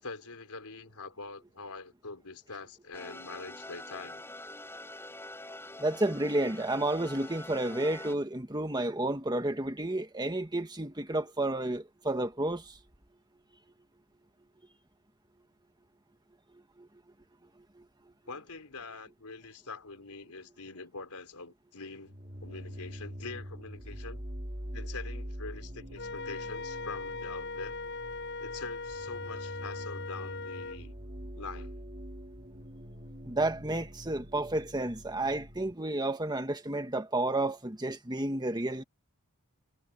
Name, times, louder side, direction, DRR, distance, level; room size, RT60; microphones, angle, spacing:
voice 1, 0.0-4.2 18.3-24.2 24.7-27.8 28.4-30.9 31.4-31.8, left 4 dB, 85° left, 4.1 m, -44 dB
sound 1, 2.9-8.1, left 2 dB, 10° left, 6.8 m, -45 dB
voice 2, 5.8-12.7 16.8-16.9 17.8-17.9 33.2-38.8, right 1 dB, 20° right, 1.7 m, -31 dB
Original Bass-Middle, 22.0-35.7, equal, 35° right, 3.7 m, -44 dB
Wind instrument woodwind instrument, 26.0-30.8, left 3 dB, 55° left, 4.9 m, -39 dB
head